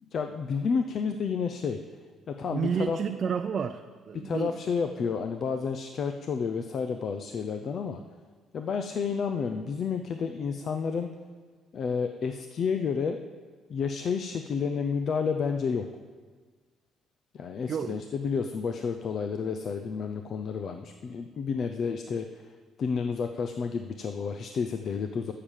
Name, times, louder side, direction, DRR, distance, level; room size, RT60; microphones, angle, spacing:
voice 1, 0.1-1.8 2.3-3.0 4.1-8.0 8.5-11.1 11.7-13.2 13.7-15.9 17.3-22.5 22.8-25.3, left 5 dB, 45° left, 7 dB, 0.6 m, -30 dB
voice 2, 2.5-4.6 17.7-18.0, right 7 dB, 40° right, 7 dB, 0.5 m, -31 dB
14.0 x 6.7 x 7.4 m, 1.5 s
cardioid pair, 135°, 0 cm